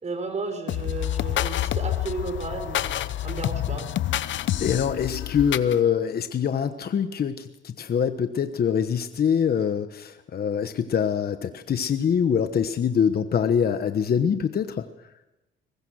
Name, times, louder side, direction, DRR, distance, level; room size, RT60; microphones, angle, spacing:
voice 1, 0.0-3.0 3.2-4.0, right 3 dB, 35° right, 7 dB, 5.2 m, -33 dB
sound 1, 0.7-5.8, left 13 dB, 70° left, 0.9 m, -28 dB
voice 2, 4.6-14.9, left 7 dB, 50° left, 9 dB, 1.2 m, -24 dB
22.5 x 20.5 x 6.4 m, 0.99 s
cardioid pair, 90°, 20 cm